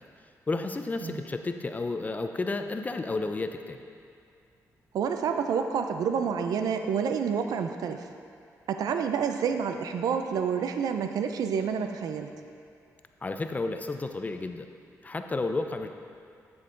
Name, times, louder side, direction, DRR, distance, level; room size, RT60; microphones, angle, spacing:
voice 1, 0.5-3.8 13.2-14.7 15.0-15.9, left 3 dB, 25° left, 7 dB, 0.6 m, -31 dB
voice 2, 4.9-8.1 8.7-12.3, right 7 dB, 80° right, 6 dB, 0.5 m, -28 dB
8.7 x 8.3 x 3.8 m, 2.4 s
cardioid pair, 95°, 6 cm